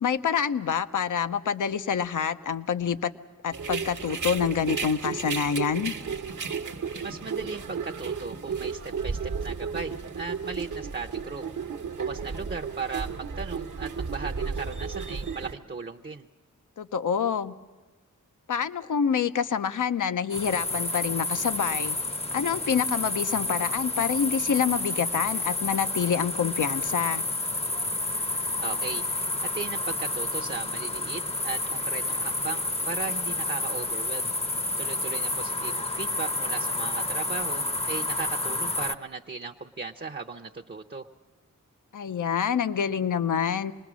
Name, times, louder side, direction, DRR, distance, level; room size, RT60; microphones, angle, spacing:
voice 1, 0.0-3.1 3.4-5.9 16.8-17.5 18.5-22.0 22.3-27.2 41.9-43.7, left 7 dB, 70° left, 11 dB, 0.6 m, -27 dB
sound 1, 3.5-15.5, right 5 dB, 70° right, 1.0 m, -33 dB
voice 2, 7.0-11.4 11.9-16.3 28.6-29.0 29.4-34.3 34.8-41.1, right 4 dB, 35° right, 5 dB, 0.7 m, -37 dB
sound 2, 20.3-38.9, left 2 dB, 20° left, 0.7 m, -30 dB
26.5 x 20.5 x 6.1 m, 1.2 s
wide cardioid pair, 90°, 32 cm